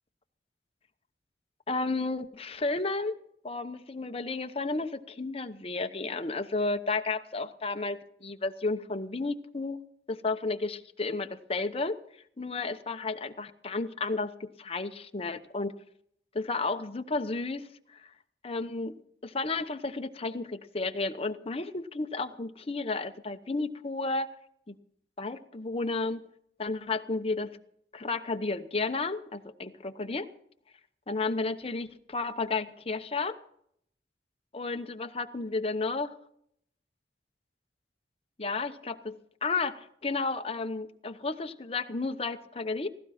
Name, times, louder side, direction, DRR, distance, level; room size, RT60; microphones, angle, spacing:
voice 1, 1.7-3.2 3.4-9.8 10.1-12.0 12.4-15.7 16.3-18.1 18.4-19.0 19.2-24.3 24.7-24.8 25.2-26.2 26.6-27.5 27.9-30.3 31.1-33.4 34.5-36.1 38.4-42.9, left 3 dB, 35° left, 8 dB, 0.9 m, -32 dB
17.5 x 16.0 x 4.3 m, 0.70 s
head